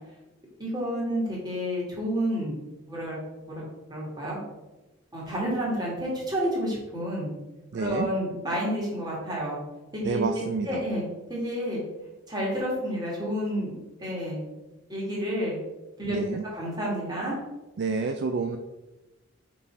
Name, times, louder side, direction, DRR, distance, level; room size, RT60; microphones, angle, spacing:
voice 1, 0.6-2.6 2.9-3.6 3.9-4.4 5.1-7.3 7.8-9.6 9.9-11.0 11.3-11.8 12.3-13.7 14.0-14.4 14.9-15.6 16.0-16.2 16.5-17.4, equal, 20° right, -5 dB, 2.1 m, -30 dB
voice 2, 7.7-8.1 10.0-10.8 16.1-16.4 17.8-18.6, right 4 dB, 50° right, 6 dB, 0.4 m, -29 dB
5.6 x 4.1 x 4.6 m, 1.1 s
head